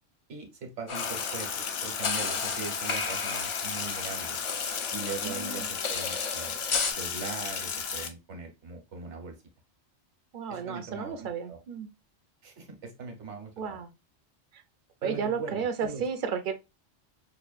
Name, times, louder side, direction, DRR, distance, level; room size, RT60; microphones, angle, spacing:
voice 1, 0.3-1.5 1.8-4.4 4.9-6.6 6.9-9.4 10.5-11.6 12.4-13.8 15.0-16.0, right 4 dB, 75° right, 1.3 m, -40 dB
Sink (filling or washing), 0.9-8.1, left 6 dB, 65° left, 0.8 m, -34 dB
sound 1, 0.9-6.9, left 4 dB, 50° left, 0.3 m, -34 dB
voice 2, 5.2-5.7 10.3-11.9 13.6-13.9 15.0-16.5, right 6 dB, 55° right, 0.6 m, -33 dB
5.8 x 2.2 x 2.4 m
omnidirectional pair, 1.2 m